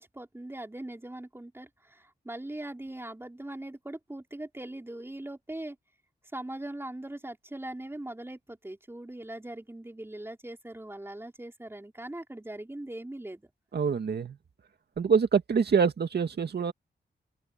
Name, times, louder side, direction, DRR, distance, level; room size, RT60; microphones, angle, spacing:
voice 1, 0.0-5.8 6.3-13.5, right 1 dB, 15° right, 4.3 m, -41 dB
voice 2, 13.7-14.3 15.0-16.7, right 6 dB, 65° right, 2.1 m, -25 dB
wide cardioid pair, 100°, 18 cm